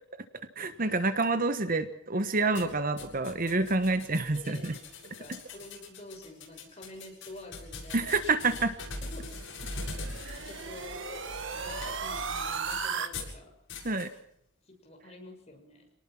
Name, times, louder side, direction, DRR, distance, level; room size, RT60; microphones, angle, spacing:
voice 1, 0.6-4.8 7.9-8.7 10.2-10.4 13.8-14.1, right 3 dB, 40° right, 10 dB, 1.2 m, -28 dB
sound 1, 2.5-13.4 13.7-14.1, left 2 dB, 60° left, 7.8 m, -42 dB
voice 2, 4.3-8.2 9.0-9.5 10.3-11.2 11.5-13.5 14.6-15.9, left 2 dB, 30° left, 2 dB, 6.8 m, -48 dB
sound 2, 9.1-13.1, right 5 dB, 60° right, 1.8 m, -36 dB
27.0 x 19.5 x 6.0 m, 0.71 s
head